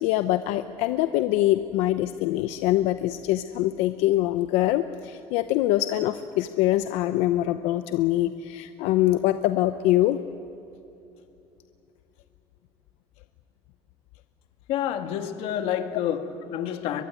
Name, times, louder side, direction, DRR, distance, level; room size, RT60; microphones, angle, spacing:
voice 1, 0.0-10.2, left 14 dB, 85° left, 10 dB, 0.8 m, -24 dB
voice 2, 14.7-17.0, left 10 dB, 60° left, 8 dB, 1.7 m, -28 dB
23.5 x 21.5 x 9.4 m, 2.7 s
cardioid pair, 175°, 11 cm